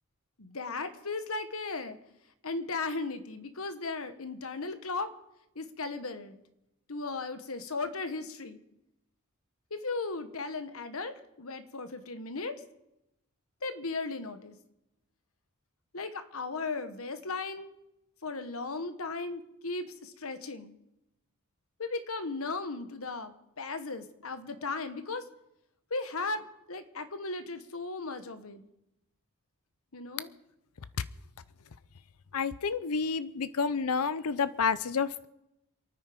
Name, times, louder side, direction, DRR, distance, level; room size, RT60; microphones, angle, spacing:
voice 1, 0.4-2.0 2.4-5.1 5.5-6.4 6.9-8.6 9.7-12.5 13.6-14.6 15.9-17.7 18.2-20.8 21.8-25.2 25.9-28.6 29.9-30.3, left 3 dB, 75° left, 10 dB, 1.3 m, -36 dB
voice 2, 32.3-35.3, left 5 dB, 90° left, 15 dB, 0.6 m, -29 dB
28.0 x 9.7 x 5.2 m, 0.86 s
head